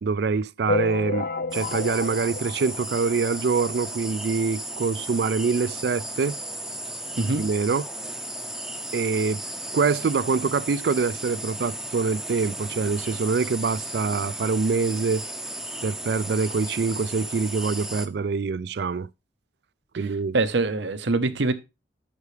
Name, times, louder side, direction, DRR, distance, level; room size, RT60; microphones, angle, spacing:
voice 1, 0.0-6.4 7.4-7.8 8.9-9.4 9.7-15.2 15.8-19.1 20.0-20.4, right 4 dB, 60° right, 0.4 m, -25 dB
sound 1, 0.7-3.5 4.0-4.1 4.3-4.4 4.7-4.8 5.7-5.8 6.3-6.4, left 3 dB, 50° left, 0.5 m, -30 dB
sound 2, 1.5-18.1, right 1 dB, ahead, 0.6 m, -35 dB
voice 2, 20.3-21.5, right 3 dB, 80° right, 0.9 m, -24 dB
9.6 x 6.8 x 3.3 m
head